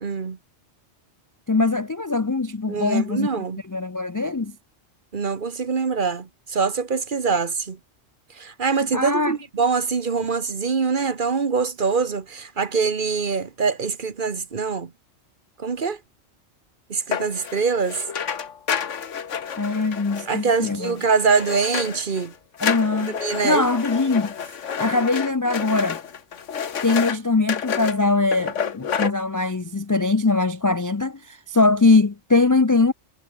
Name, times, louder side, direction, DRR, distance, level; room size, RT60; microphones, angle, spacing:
voice 1, 0.0-0.4 2.7-3.6 5.1-7.8 8.4-14.9 15.6-16.0 16.9-18.0 20.3-22.3 23.2-23.6, right 5 dB, 45° right, 1.3 m, -24 dB
voice 2, 1.5-4.5 8.9-9.4 19.6-21.0 22.6-24.3 24.8-26.0 26.8-32.9, left 3 dB, 30° left, 0.3 m, -21 dB
sound 1, 17.1-22.3 22.6-27.2 27.5-28.0 28.3-29.1, left 7 dB, 90° left, 1.6 m, -29 dB
omnidirectional pair, 1.2 m